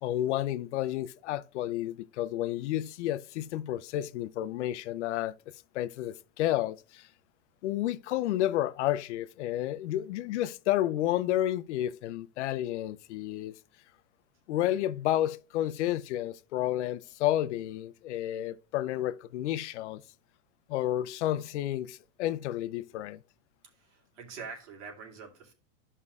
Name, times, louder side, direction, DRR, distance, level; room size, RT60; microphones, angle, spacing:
voice 1, 0.0-5.3 5.7-7.1 7.6-13.6 14.5-20.0 20.7-23.2, left 13 dB, 75° left, 0.6 m, -31 dB
voice 2, 23.6-25.5, right 5 dB, 70° right, 2.4 m, -45 dB
13.0 x 5.5 x 2.4 m
supercardioid pair, 150°, 36 cm